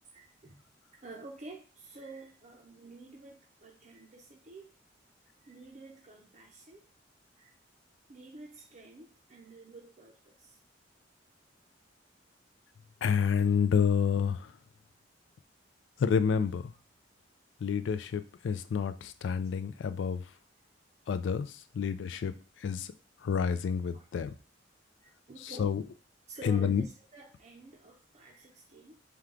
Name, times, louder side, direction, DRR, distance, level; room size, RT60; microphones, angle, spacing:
voice 1, 0.1-0.6 1.0-4.7 5.4-6.9 7.4-7.5 8.1-10.6 23.9-24.3 25.0-25.7 26.3-29.0, right 2 dB, 40° right, 0.5 m, -50 dB
voice 2, 13.0-14.5 16.0-16.7 17.6-20.2 21.1-22.3 22.6-22.9 23.2-24.3 25.6-25.8 26.4-26.8, left 6 dB, 75° left, 0.3 m, -29 dB
4.6 x 2.2 x 3.7 m
head